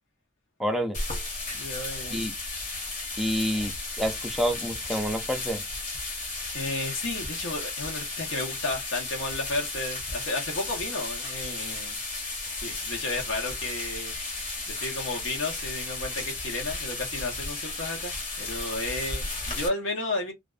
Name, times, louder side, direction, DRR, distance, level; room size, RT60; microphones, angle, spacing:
voice 1, 0.6-1.0 2.1-2.3 3.2-5.6, equal, ahead, 0.4 m, -28 dB
sound 1, 0.9-19.7, left 2 dB, 40° left, 0.8 m, -34 dB
voice 2, 1.5-2.3 6.5-12.0 12.6-14.1 14.7-20.3, left 2 dB, 85° left, 0.8 m, -33 dB
2.4 x 2.2 x 2.3 m
head